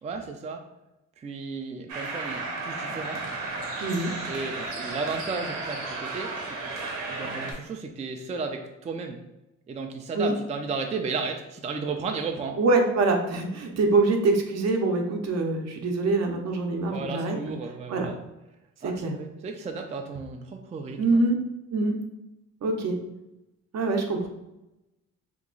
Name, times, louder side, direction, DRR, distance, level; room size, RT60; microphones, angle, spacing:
voice 1, 0.0-0.6 1.2-3.2 4.3-9.2 9.7-12.6 16.9-18.2 18.8-21.2, right 4 dB, 25° right, 4 dB, 0.3 m, -34 dB
sound 1, 1.9-7.5, right 3 dB, 90° right, 0.8 m, -33 dB
voice 2, 3.8-4.1 10.1-10.3 12.6-17.5 17.9-18.1 18.8-19.1 21.0-21.4 21.7-22.0 22.6-23.0 23.7-24.3, right 3 dB, 60° right, 3 dB, 0.7 m, -24 dB
2.9 x 2.3 x 3.7 m, 0.93 s
cardioid pair, 90°, 30 cm